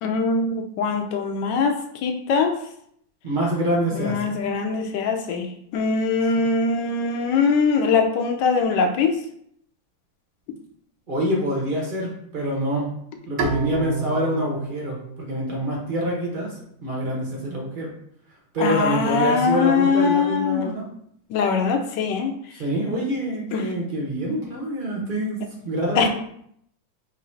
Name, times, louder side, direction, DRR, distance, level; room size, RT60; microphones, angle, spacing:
voice 1, 0.0-2.5 3.9-5.5 5.7-9.1 18.6-20.7 21.3-22.3 23.5-23.6 25.9-26.1, left 5 dB, 70° left, 4 dB, 1.1 m, -22 dB
voice 2, 3.2-4.3 6.4-6.5 11.1-12.9 13.3-16.5 16.8-17.9 18.5-20.9 22.5-25.4 25.6-26.1, equal, 45° right, -3 dB, 0.6 m, -26 dB
Bowed string instrument, 13.4-16.6, right 4 dB, 85° right, 1.6 m, -31 dB
3.8 x 2.6 x 4.3 m, 0.69 s
omnidirectional pair, 2.3 m